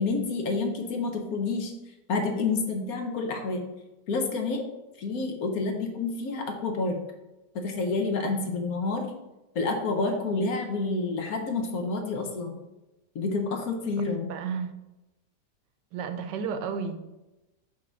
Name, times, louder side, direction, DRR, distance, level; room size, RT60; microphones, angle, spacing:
voice 1, 0.0-1.7 2.1-3.6 4.1-4.6 5.0-7.0 7.5-9.1 9.5-12.6 13.1-14.3, left 3 dB, 60° left, 3 dB, 1.3 m, -29 dB
voice 2, 14.3-14.7 15.9-17.0, right 6 dB, 90° right, 9 dB, 1.3 m, -32 dB
5.4 x 5.2 x 3.9 m, 0.99 s
omnidirectional pair, 1.8 m